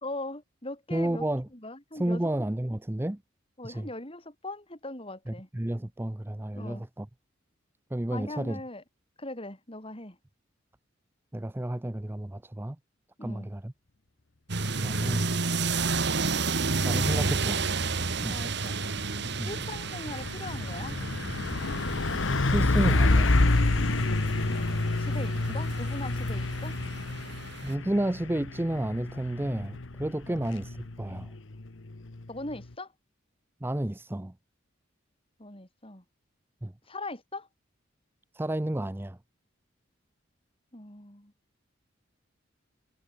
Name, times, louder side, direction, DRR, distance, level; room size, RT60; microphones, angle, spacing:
voice 1, 0.0-1.2 1.6-2.2 3.6-5.5 6.5-6.8 8.1-8.8 9.2-10.2 13.2-13.5 18.3-18.8 19.4-21.0 24.5-26.8 30.3-30.4 32.3-32.9 35.4-36.0 36.9-37.5 40.7-41.3, left 2 dB, 30° left, 5.3 m, -40 dB
voice 2, 0.9-1.5 1.9-3.2 3.6-3.9 5.3-7.1 7.9-8.6 11.3-12.8 13.2-13.7 14.8-15.3 16.8-17.6 18.2-18.4 19.4-19.5 22.4-23.4 25.5-25.6 27.6-31.3 33.6-34.3 36.6-36.7 38.3-39.2, right 1 dB, 10° right, 0.5 m, -31 dB
sound 1, 14.5-27.7, right 4 dB, 60° right, 1.9 m, -32 dB
Truck, 18.4-32.7, left 2 dB, 75° left, 1.2 m, -28 dB
head